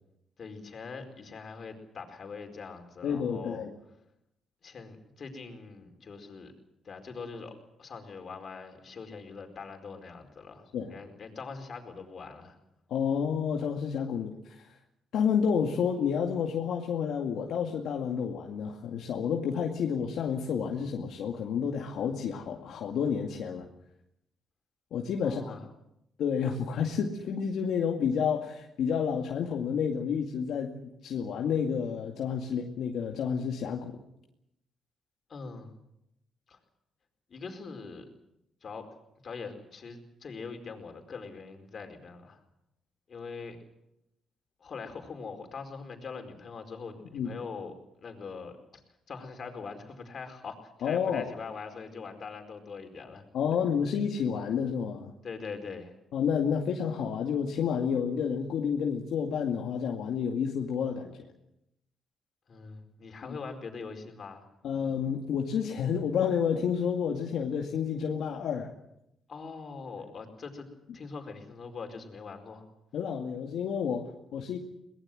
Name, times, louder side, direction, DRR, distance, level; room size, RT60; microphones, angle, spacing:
voice 1, 0.4-3.7 4.6-6.5 6.8-12.6 25.2-25.7 35.3-35.7 36.5-36.6 37.3-38.1 38.6-38.9 39.2-42.4 43.1-43.6 44.6-47.7 48.0-48.8 49.1-53.2 55.2-55.9 62.5-64.5 69.3-72.6, left 4 dB, 45° left, 5 dB, 4.7 m, -42 dB
voice 2, 3.0-3.7 10.7-10.9 12.9-14.7 15.1-23.7 24.9-25.4 26.2-30.7 31.0-34.0 47.1-47.3 50.8-51.3 53.3-55.1 56.1-61.1 64.6-68.7 72.9-74.6, left 7 dB, 75° left, 1 dB, 2.2 m, -30 dB
23.0 x 20.0 x 7.8 m, 0.82 s
cardioid pair, 90°, 0 cm